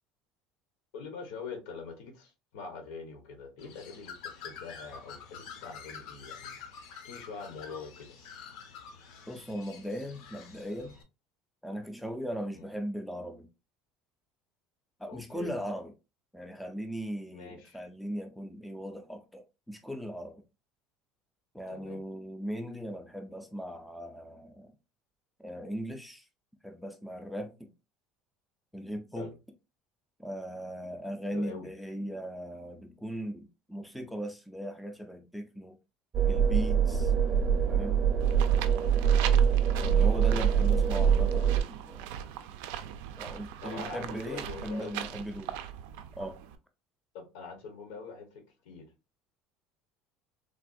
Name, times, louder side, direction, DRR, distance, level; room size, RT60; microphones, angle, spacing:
voice 1, 0.9-6.6 7.0-8.2 12.5-12.6 15.1-15.5 17.3-17.8 21.7-22.0 29.1-29.3 31.3-31.7 39.2-39.4 43.6-45.1 47.1-48.9, left 4 dB, 80° left, 0.9 m, -44 dB
Bird, 3.6-11.0, left 6 dB, 60° left, 0.6 m, -47 dB
voice 2, 9.3-11.0 11.6-13.5 15.0-15.9 16.3-20.4 21.5-24.7 25.4-26.3 26.6-27.7 28.7-29.3 30.2-35.8 36.3-37.1 37.6-38.1 39.8-42.1 43.2-45.6 46.1-46.4, equal, ahead, 0.3 m, -38 dB
sound 1, 36.1-41.6, right 7 dB, 30° right, 0.6 m, -24 dB
sound 2, 38.2-46.5, right 10 dB, 80° right, 0.3 m, -40 dB
3.3 x 2.3 x 2.5 m
cardioid pair, 170°, 0 cm